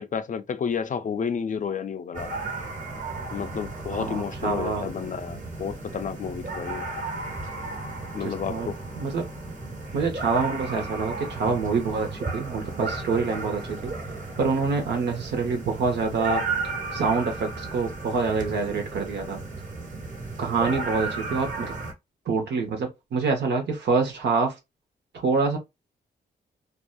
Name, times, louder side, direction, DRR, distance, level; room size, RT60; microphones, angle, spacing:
voice 1, 0.0-2.3 3.3-6.9 8.1-8.8, left 6 dB, 45° left, 0.4 m, -31 dB
sound 1, 2.1-21.9, right 3 dB, 50° right, 1.3 m, -34 dB
voice 2, 3.9-4.9 8.2-9.3 9.9-13.9 14.4-16.4 16.9-19.4 20.4-21.7 22.3-24.5 25.1-25.6, right 4 dB, 85° right, 0.9 m, -26 dB
2.6 x 2.3 x 2.2 m
cardioid pair, 60°, 18 cm